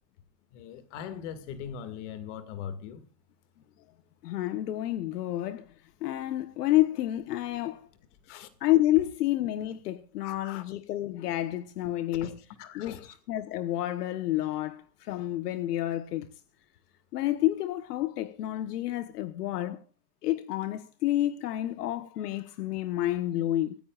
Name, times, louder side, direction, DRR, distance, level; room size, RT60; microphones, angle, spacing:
voice 1, 0.5-3.0 8.3-8.5 10.2-10.6 12.2-12.3 12.6-13.0, left 8 dB, 50° left, 2.2 m, -40 dB
voice 2, 4.2-5.6 6.0-7.9 8.6-12.4 12.7-16.3 17.1-19.8 20.2-23.8, left 14 dB, 75° left, 1.2 m, -29 dB
25.0 x 14.5 x 2.5 m
supercardioid pair, 170°, 47 cm